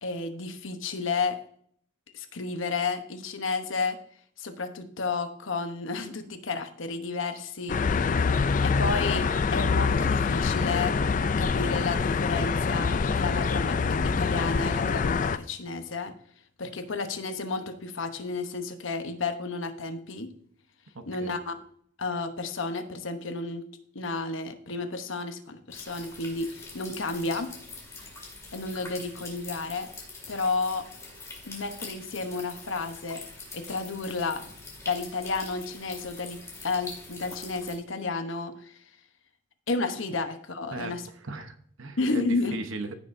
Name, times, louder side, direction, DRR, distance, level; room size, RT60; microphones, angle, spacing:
voice 1, 0.0-1.4 2.1-4.0 4.4-8.1 8.6-10.9 11.4-16.1 16.6-20.3 21.1-21.6 22.0-23.6 23.9-27.5 28.5-29.9 30.3-30.8 31.4-33.2 33.5-34.4 34.9-38.7 39.7-41.1 42.0-42.6, left 3 dB, 70° left, 8 dB, 1.0 m, -32 dB
sound 1, 7.7-15.4, left 5 dB, 40° left, 0.3 m, -25 dB
voice 2, 20.9-21.4 40.7-41.0 41.2-43.0, right 2 dB, 75° right, 8 dB, 0.9 m, -37 dB
sound 2, 25.7-37.8, left 3 dB, 15° left, 2.2 m, -44 dB
15.0 x 6.3 x 2.6 m, 0.62 s
head